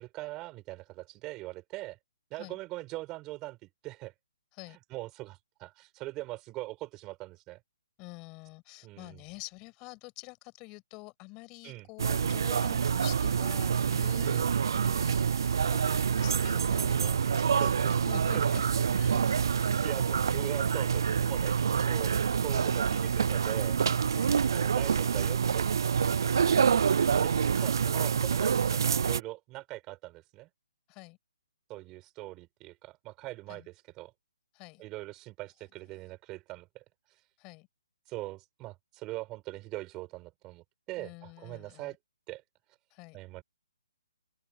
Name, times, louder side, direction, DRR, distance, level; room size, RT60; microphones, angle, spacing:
voice 1, 0.0-2.0 2.3-3.6 3.8-4.1 4.9-7.6 8.8-9.2 11.6-11.9 14.2-14.5 17.6-17.8 18.3-18.6 19.1-19.2 19.5-23.8 24.5-25.7 27.0-30.5 31.7-34.1 34.8-36.8 38.1-42.0 42.3-42.4 43.1-43.4, right 19 dB, 20° right, 5.7 m, -41 dB
voice 2, 8.0-18.6 18.9-19.2 24.1-24.4 30.9-31.2 33.5-33.7 34.5-34.8 35.9-36.0 37.4-37.7 41.0-42.0 42.9-43.2, left 26 dB, 20° left, 6.9 m, -48 dB
sound 1, 12.0-29.2, right 7 dB, 65° right, 0.4 m, -27 dB
open air
hypercardioid pair, 160°, 2 cm